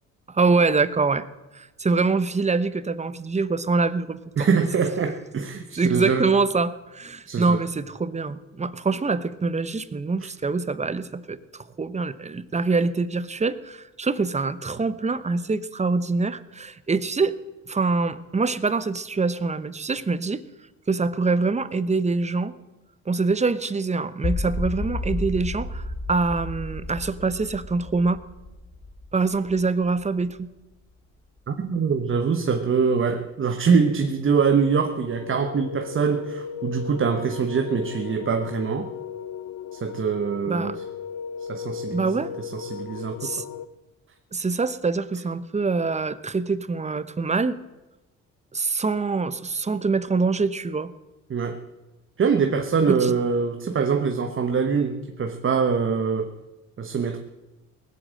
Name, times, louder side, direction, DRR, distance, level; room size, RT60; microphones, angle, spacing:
voice 1, 0.3-1.2 1.5-4.5 5.8-17.4 17.7-20.4 20.9-22.5 23.1-28.2 29.1-30.5 40.5-40.8 41.9-42.3 43.2-43.4 44.3-47.6 48.5-50.9 52.9-53.1, right 4 dB, 25° right, 15 dB, 0.8 m, -25 dB
voice 2, 4.4-6.3 7.3-7.6 31.5-38.9 39.7-40.8 41.5-42.1 42.4-43.3 51.3-51.6 52.2-56.3 56.8-57.2, right 5 dB, 40° right, 6 dB, 1.2 m, -24 dB
sound 1, 24.2-30.3, left 2 dB, 50° left, 3.3 m, -32 dB
sound 2, 34.6-43.7, left 7 dB, 80° left, 0.8 m, -36 dB
19.0 x 8.2 x 7.6 m, 1.0 s
cardioid pair, 90°, 30 cm